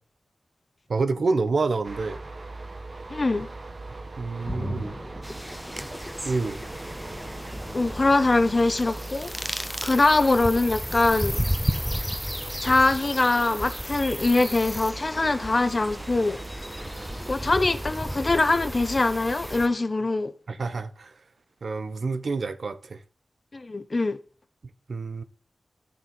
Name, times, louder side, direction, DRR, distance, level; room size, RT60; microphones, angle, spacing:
voice 1, 0.9-2.2 4.2-4.9 6.2-6.6 20.5-21.1 21.6-23.0 24.9-25.2, right 3 dB, 75° right, 0.9 m, -27 dB
sound 1, 1.8-19.7, right 2 dB, 55° right, 1.5 m, -40 dB
voice 2, 3.1-3.5 7.7-11.4 12.6-16.4 17.3-20.3 23.5-24.2, left 2 dB, 45° left, 1.3 m, -23 dB
sound 2, 4.4-10.3 10.6-10.7, equal, 25° left, 1.7 m, -40 dB
sound 3, 5.2-19.7, equal, 5° left, 1.0 m, -34 dB
9.8 x 7.4 x 6.1 m
cardioid pair, 40°, 0 cm